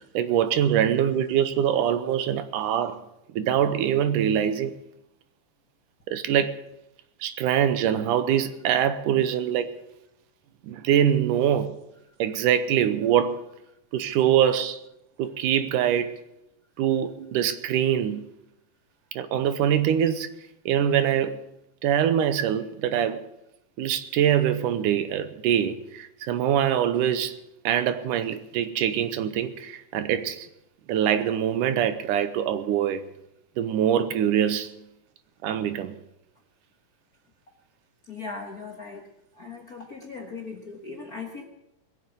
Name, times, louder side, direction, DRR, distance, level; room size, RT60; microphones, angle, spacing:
voice 1, 0.1-3.0 3.3-4.7 6.1-6.6 7.2-9.7 10.6-11.8 12.2-13.4 13.9-14.8 15.2-16.2 16.8-18.2 19.2-20.3 20.7-21.4 21.8-23.2 23.8-27.4 27.6-30.5 30.9-33.0 33.6-34.7 35.4-35.9, right 9 dB, 80° right, 2.3 m, -24 dB
voice 2, 38.1-39.0 39.3-41.4, left 4 dB, 45° left, 1.2 m, -38 dB
21.0 x 7.3 x 8.1 m
omnidirectional pair, 3.8 m